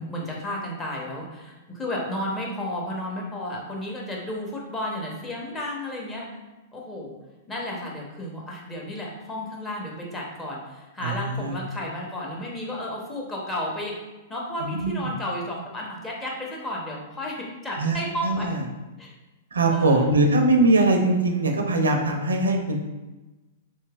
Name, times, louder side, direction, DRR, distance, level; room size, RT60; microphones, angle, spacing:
voice 1, 0.0-6.2 6.7-7.2 7.5-14.0 14.3-18.5 19.0-19.1 19.7-20.1, left 1 dB, 15° left, -3 dB, 0.8 m, -32 dB
voice 2, 11.0-11.6 14.6-15.1 17.7-18.6 19.5-22.8, right 2 dB, 85° right, 3 dB, 0.4 m, -22 dB
3.1 x 2.7 x 2.3 m, 1.1 s
hypercardioid pair, 110°, 0 cm